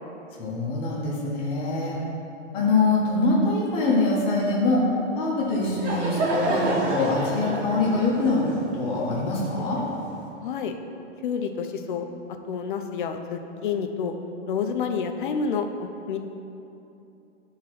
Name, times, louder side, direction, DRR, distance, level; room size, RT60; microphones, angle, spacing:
voice 1, 0.4-2.0 2.5-4.9 5.1-9.8, left 2 dB, 15° left, -5 dB, 0.8 m, -24 dB
Laughter / Crowd, 5.4-10.1, right 1 dB, 85° right, 1.1 m, -29 dB
voice 2, 10.4-10.7 11.2-12.1 12.5-14.1 14.5-16.2, left 6 dB, 45° left, 5 dB, 0.5 m, -29 dB
11.0 x 3.6 x 3.1 m, 2.8 s
hypercardioid pair, 160°, 35 cm